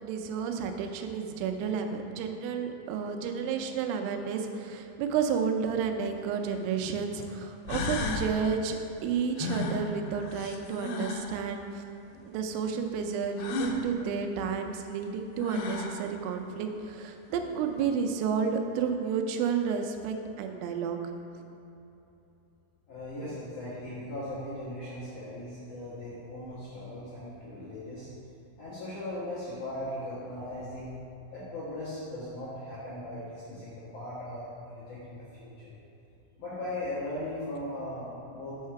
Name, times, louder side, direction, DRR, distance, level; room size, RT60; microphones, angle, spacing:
voice 1, 0.0-11.8 12.3-21.1, right 6 dB, 85° right, 5 dB, 3.3 m, -31 dB
sound 1, 6.2-6.3 7.2-7.3 7.7-8.3 9.4-11.3 13.4-13.8 15.0-15.1 15.4-16.0, left 3 dB, 80° left, 3.1 m, -33 dB
voice 2, 22.9-28.1 28.6-30.9 31.3-35.8 36.4-38.6, left 1 dB, 65° left, -11 dB, 2.1 m, -38 dB
6.4 x 5.7 x 5.7 m, 2.9 s
omnidirectional pair, 5.8 m